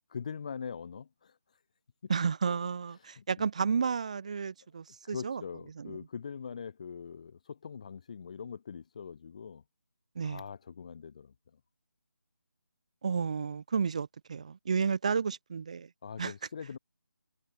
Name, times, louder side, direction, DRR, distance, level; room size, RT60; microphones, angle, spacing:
voice 1, 0.1-1.4 2.0-2.1 3.0-3.2 5.0-9.6 10.2-11.3 16.0-16.8, left 6 dB, 20° left, 6.2 m, -42 dB
voice 2, 2.1-5.4 5.8-6.0 10.2-10.4 13.0-15.9 16.2-16.3, right 6 dB, 20° right, 1.9 m, -32 dB
figure-of-eight pair, 180°, 10 cm